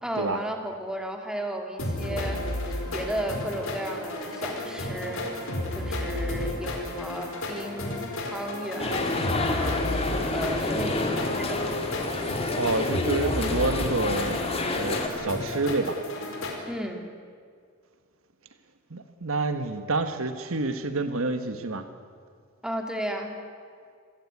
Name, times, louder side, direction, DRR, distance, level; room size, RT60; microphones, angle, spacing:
voice 1, 0.0-2.6 2.9-5.4 5.7-11.7 16.6-17.1 22.6-23.3, right 1 dB, 5° right, 2 dB, 2.9 m, -34 dB
sound 1, 1.8-16.6, left 1 dB, 70° left, 4.8 m, -32 dB
sound 2, 8.8-15.1, left 2 dB, 30° left, 2.5 m, -29 dB
voice 2, 12.5-14.4 14.7-16.0 18.9-21.9, right 3 dB, 70° right, 9 dB, 1.4 m, -28 dB
27.5 x 16.0 x 9.7 m, 2.1 s
head